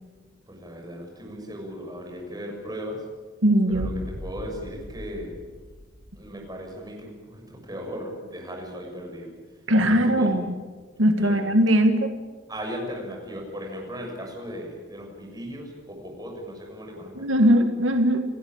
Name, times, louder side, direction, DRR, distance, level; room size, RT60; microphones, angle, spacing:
voice 1, 0.5-3.0 3.7-3.9 4.2-5.4 6.2-9.3 9.8-10.4 11.2-11.4 12.5-17.3, equal, 20° right, 0 dB, 6.6 m, -37 dB
voice 2, 3.4-3.9 9.7-10.5 11.0-12.1 17.2-18.2, equal, 85° right, 6 dB, 1.9 m, -20 dB
sound 1, 3.7-6.7, equal, 70° left, 2.6 m, -38 dB
29.5 x 15.5 x 8.8 m, 1.4 s
head